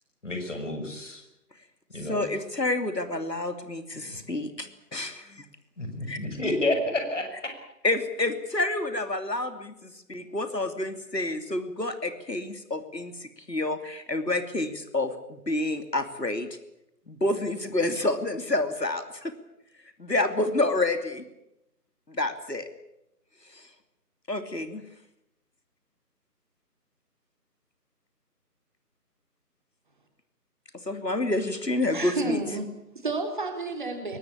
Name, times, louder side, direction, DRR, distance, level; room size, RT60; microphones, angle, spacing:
voice 1, 0.2-1.2 1.9-2.3 3.9-4.2 5.8-7.5, left 1 dB, 45° left, 5 dB, 6.3 m, -30 dB
voice 2, 2.1-5.1 7.8-16.5 17.1-19.3 20.0-21.2 22.1-22.7 23.5-23.6 24.3-24.8 30.9-32.4, left 2 dB, 80° left, 8 dB, 3.0 m, -28 dB
voice 3, 31.9-34.2, right 3 dB, 30° right, 5 dB, 3.4 m, -31 dB
22.5 x 19.5 x 8.6 m, 0.84 s
figure-of-eight pair, 160°, 49 cm